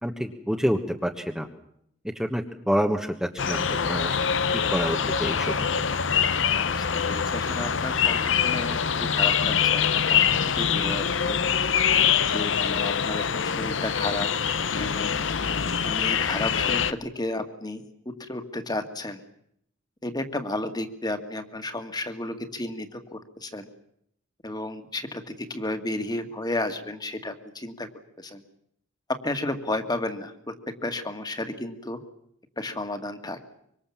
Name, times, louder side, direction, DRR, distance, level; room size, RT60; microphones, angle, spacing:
voice 1, 0.0-1.5 2.1-4.2 4.7-5.7, equal, 5° right, 3 dB, 1.2 m, -28 dB
sound 1, 3.4-16.9, left 7 dB, 70° left, 0.9 m, -24 dB
voice 2, 6.7-11.4 12.3-14.3 14.7-15.2 15.8-17.8 18.2-19.2 20.0-23.7 24.4-27.9 28.2-28.4 29.2-30.5 30.8-32.0 32.6-33.4, left 2 dB, 20° left, 7 dB, 2.1 m, -33 dB
25.0 x 24.0 x 7.3 m, 0.74 s
head